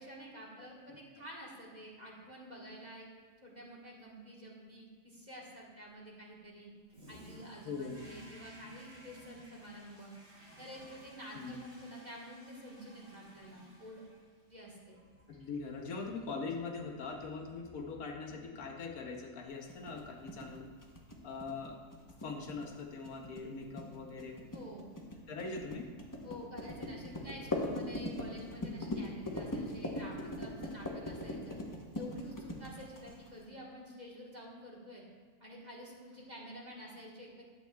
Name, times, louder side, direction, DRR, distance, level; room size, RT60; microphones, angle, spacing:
voice 1, 0.0-3.1 3.4-6.7 7.1-10.1 10.6-14.0 14.5-15.0 24.5-24.9 26.2-31.6 31.9-35.0 35.4-37.4, equal, 30° right, -4 dB, 1.4 m, -49 dB
Toilet flush, 6.9-19.2, equal, 60° right, 3.1 m, -57 dB
voice 2, 7.6-8.0 11.3-11.5 15.3-20.7 21.2-21.8 22.2-24.4 25.3-25.9, left 4 dB, 70° left, 2 dB, 1.3 m, -42 dB
sound 1, 19.7-33.4, left 1 dB, 15° left, 0.7 m, -40 dB
11.5 x 8.2 x 2.3 m, 1.5 s
omnidirectional pair, 1.6 m